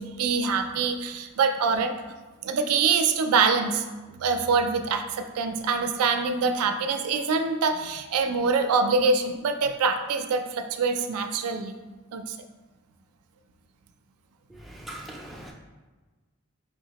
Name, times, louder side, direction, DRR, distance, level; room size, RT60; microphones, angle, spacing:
voice 1, 0.0-2.0 2.4-3.8 4.2-11.7 12.1-12.4, right 4 dB, 85° right, 7 dB, 0.4 m, -25 dB
voice 2, 14.5-15.5, right 1 dB, ahead, -2 dB, 0.4 m, -41 dB
4.7 x 2.8 x 2.8 m, 1.3 s
head